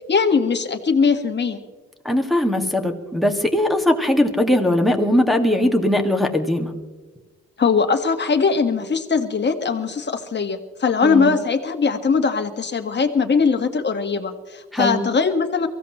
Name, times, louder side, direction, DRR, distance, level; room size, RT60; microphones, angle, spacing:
voice 1, 0.1-1.6 7.6-15.7, left 5 dB, 35° left, 6 dB, 1.8 m, -20 dB
voice 2, 2.0-6.7 11.0-11.3 14.7-15.1, left 1 dB, ahead, 1 dB, 2.1 m, -20 dB
23.5 x 16.0 x 3.2 m, 1.3 s
cardioid pair, 90°, 30 cm